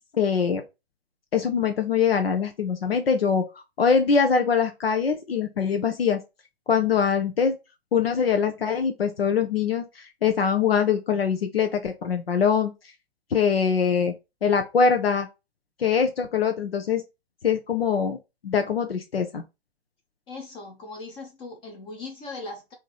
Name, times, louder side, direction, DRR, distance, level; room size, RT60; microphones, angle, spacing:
voice 1, 0.1-0.6 1.3-3.4 3.8-6.2 6.7-7.5 7.9-12.7 13.3-14.1 14.4-15.3 15.8-17.0 17.4-18.2 18.4-19.4, left 6 dB, 65° left, 0.8 m, -23 dB
voice 2, 20.3-22.7, left 3 dB, 15° left, 0.7 m, -39 dB
3.6 x 2.8 x 4.6 m
figure-of-eight pair, 115°, 32 cm